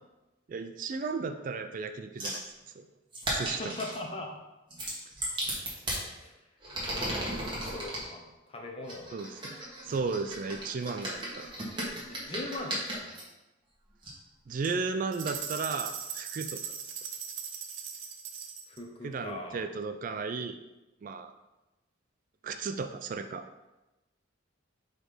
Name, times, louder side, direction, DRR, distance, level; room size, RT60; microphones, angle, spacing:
voice 1, 0.5-2.4 2.8-2.9 3.3-3.7 9.1-11.5 14.5-16.6 19.0-20.6 21.0-21.3 22.4-23.4, right 4 dB, 45° right, 8 dB, 0.3 m, -34 dB
sound 1, 2.2-2.5 3.1-4.0 4.7-6.0 6.6-8.1 8.9-13.2 14.0-14.1 14.6-14.7 15.2-15.3, right 1 dB, 25° right, 1.6 m, -36 dB
voice 2, 3.5-4.4 6.2-6.3 7.6-9.1 12.1-13.1 18.7-19.6, left 2 dB, 30° left, 1 dB, 0.9 m, -40 dB
sound 2, 15.1-18.8, right 7 dB, 80° right, 0.7 m, -39 dB
5.0 x 4.0 x 5.0 m, 1.0 s
head